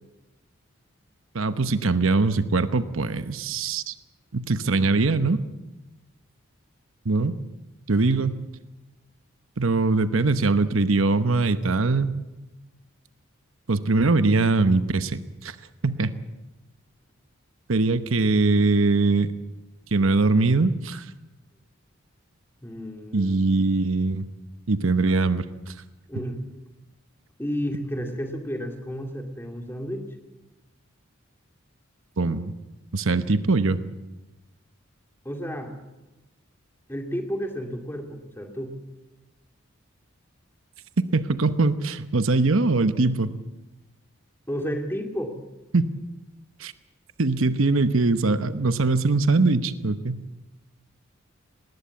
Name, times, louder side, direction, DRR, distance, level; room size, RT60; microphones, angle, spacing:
voice 1, 1.3-3.9 4.3-5.4 7.0-7.4 7.9-8.4 9.6-12.1 13.7-15.6 15.8-16.1 17.7-19.3 19.9-21.1 23.1-24.3 24.7-25.7 32.2-32.5 32.9-33.8 41.1-43.3 45.7-45.9 46.6-46.7 47.2-50.2, right 3 dB, 70° right, 12 dB, 1.0 m, -22 dB
voice 2, 22.6-23.3 26.1-26.4 27.4-30.1 35.2-35.7 36.9-38.7 44.5-45.4, equal, 10° left, 4 dB, 2.4 m, -31 dB
19.5 x 18.5 x 8.5 m, 1.1 s
head